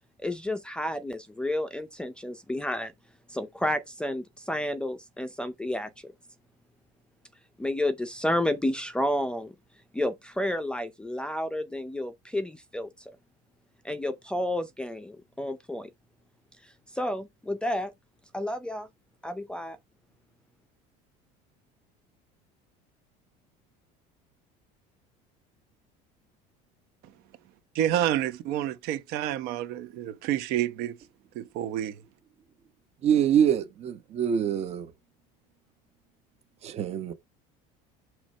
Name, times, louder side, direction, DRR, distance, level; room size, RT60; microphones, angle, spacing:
voice 1, 0.2-2.9 3.3-6.1 7.6-9.5 9.9-12.9 13.8-15.9 16.6-17.9 18.3-18.9 19.2-19.8, left 1 dB, 5° left, 0.5 m, -31 dB
voice 2, 27.7-31.0 31.3-32.0, right 12 dB, 65° right, 1.0 m, -29 dB
voice 3, 33.0-34.9 36.6-37.1, right 9 dB, 40° right, 1.0 m, -25 dB
5.9 x 3.1 x 5.0 m
cardioid pair, 150°, 17 cm